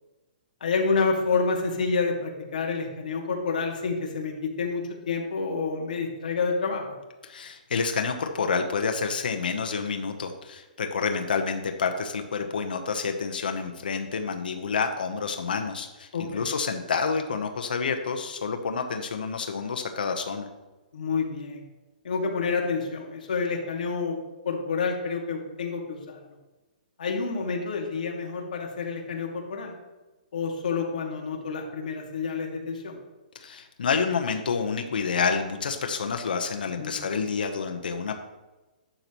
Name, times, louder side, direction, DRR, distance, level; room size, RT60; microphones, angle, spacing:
voice 1, 0.6-7.0 16.1-16.5 20.9-21.6 22.0-24.2 24.5-26.2 27.0-29.7 30.3-33.0 36.8-37.0, left 4 dB, 65° left, 0 dB, 2.1 m, -28 dB
voice 2, 7.2-20.5 33.4-38.2, left 5 dB, 80° left, 5 dB, 1.0 m, -28 dB
11.5 x 6.8 x 3.1 m, 1.1 s
hypercardioid pair, 170°, 5 cm